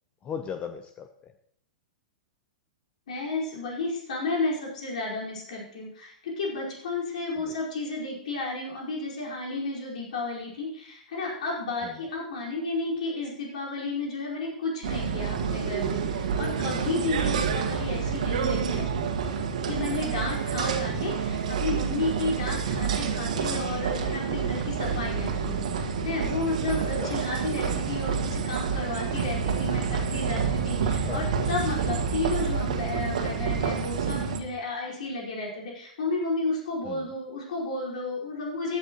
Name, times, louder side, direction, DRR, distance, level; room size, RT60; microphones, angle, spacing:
voice 1, 0.2-1.3 7.4-7.5 11.8-11.9 27.0-27.2 31.1-31.5 36.8-37.1, left 7 dB, 25° left, 8 dB, 0.8 m, -37 dB
voice 2, 3.1-18.9 19.6-38.8, left 3 dB, 65° left, -3 dB, 4.9 m, -32 dB
sound 1, 14.8-34.4, right 6 dB, 65° right, 1.8 m, -28 dB
16.0 x 11.5 x 3.1 m, 0.66 s
figure-of-eight pair, 105°, 4 cm